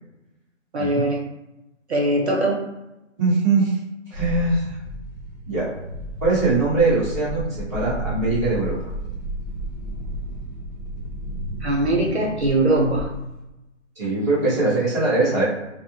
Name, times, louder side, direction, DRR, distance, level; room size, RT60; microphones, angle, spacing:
voice 1, 0.7-1.2 1.9-2.6 11.6-13.1, right 1 dB, 60° right, 0 dB, 0.6 m, -21 dB
voice 2, 3.2-3.8 4.1-4.8 5.5-5.7 6.2-8.8 14.0-15.4, right 3 dB, 15° right, -14 dB, 0.8 m, -21 dB
sound 1, 4.1-13.5, right 1 dB, 35° left, 0.5 m, -32 dB
2.6 x 2.0 x 3.1 m, 0.95 s
hypercardioid pair, 165°, 38 cm